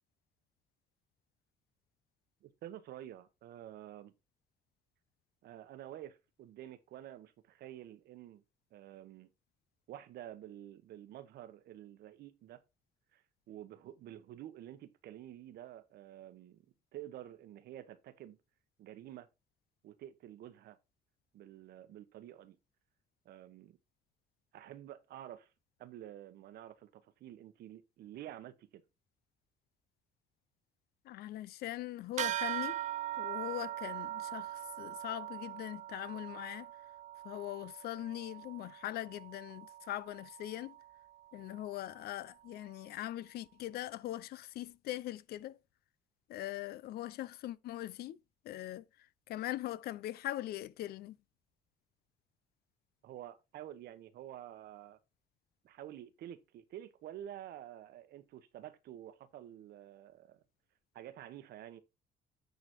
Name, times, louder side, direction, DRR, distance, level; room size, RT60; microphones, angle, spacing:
voice 1, 2.4-4.1 5.4-8.4 8.7-9.3 9.9-12.6 13.1-16.7 16.9-18.4 18.8-19.3 19.8-20.8 21.3-22.6 23.2-23.8 24.5-25.5 25.8-28.8 53.0-55.0 55.6-60.4 60.9-61.8, right 12 dB, 70° right, 1.1 m, -49 dB
voice 2, 31.1-32.8 33.2-36.7 37.2-40.7 41.3-45.6 46.3-48.2 48.4-48.8 49.3-51.2, left 14 dB, 70° left, 0.5 m, -41 dB
sound 1, 32.2-42.0, right 13 dB, 45° right, 0.4 m, -42 dB
9.4 x 4.1 x 4.4 m
cardioid pair, 110°, 17 cm